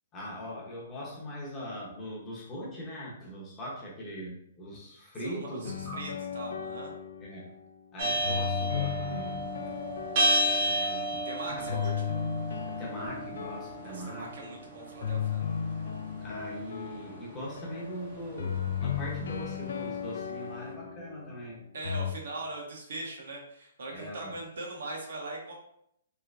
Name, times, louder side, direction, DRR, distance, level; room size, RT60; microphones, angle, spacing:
voice 1, 0.1-6.0 7.2-7.5 7.9-9.4 10.4-11.8 12.6-14.5 16.2-21.6 23.9-24.3, equal, 15° left, -5 dB, 0.8 m, -41 dB
voice 2, 5.2-6.9 11.2-11.9 13.8-15.4 21.7-25.5, right 2 dB, 70° right, -1 dB, 1.0 m, -40 dB
sound 1, 5.6-7.6 8.2-11.2 11.7-14.3 15.0-21.3 21.8-22.1, left 8 dB, 70° left, 0.3 m, -35 dB
sound 2, 8.0-20.1, right 1 dB, 35° right, 0.7 m, -33 dB
3.2 x 2.9 x 2.5 m, 0.72 s
hypercardioid pair, 165°, 0 cm